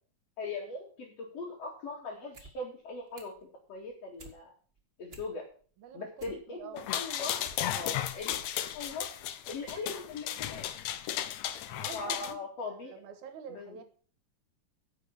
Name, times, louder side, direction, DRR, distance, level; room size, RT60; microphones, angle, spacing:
voice 1, 0.4-3.3 3.7-4.5 5.0-5.4 5.9-7.4 7.7-8.4 8.7-9.1 9.5-10.7 11.9-12.9 13.5-13.8, left 3 dB, 55° left, -2 dB, 3.5 m, -40 dB
sound 1, 2.2-2.5 2.8-3.4 3.8-4.4 4.8-4.9 5.1-5.6 6.0-7.6 8.0-8.5 9.1-9.2 9.6-9.9 10.2-10.3, right 2 dB, 30° right, 1.2 m, -52 dB
voice 2, 5.8-6.9 11.7-12.4 12.7-13.8, right 7 dB, 75° right, 9 dB, 2.7 m, -47 dB
sound 2, 6.8-12.3, left 11 dB, 70° left, 1.9 m, -35 dB
10.0 x 6.7 x 7.0 m, 0.43 s
omnidirectional pair, 3.6 m